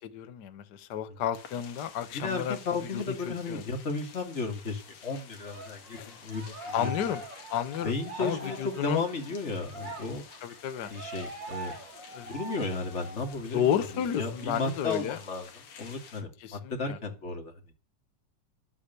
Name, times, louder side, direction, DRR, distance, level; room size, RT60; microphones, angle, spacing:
voice 1, 0.0-2.6 2.9-3.6 6.0-6.1 6.7-7.2 7.5-9.0 10.4-10.9 12.1-12.3 13.5-15.2 16.4-16.6 16.9-17.0, left 9 dB, 75° left, 0.9 m, -31 dB
sound 1, 1.3-16.2, left 7 dB, 55° left, 2.6 m, -51 dB
voice 2, 2.1-7.1 7.8-10.2 10.9-11.7 12.2-17.5, left 3 dB, 25° left, 2.3 m, -34 dB
Cheering, 5.4-13.4 13.8-14.0 14.3-15.3, right 2 dB, 35° right, 3.6 m, -43 dB
12.0 x 8.3 x 6.8 m
omnidirectional pair, 3.8 m